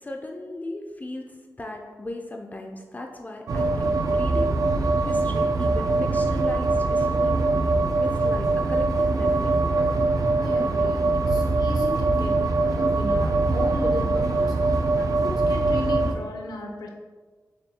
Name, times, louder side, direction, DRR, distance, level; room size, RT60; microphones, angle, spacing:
voice 1, 0.0-4.7 5.0-9.7, left 2 dB, 25° left, 2 dB, 0.4 m, -37 dB
sound 1, 3.5-16.1, right 3 dB, 60° right, 0.4 m, -22 dB
voice 2, 10.4-16.9, left 2 dB, 85° left, 1 dB, 0.6 m, -35 dB
6.9 x 2.3 x 2.7 m, 1.4 s
wide cardioid pair, 85°, 7 cm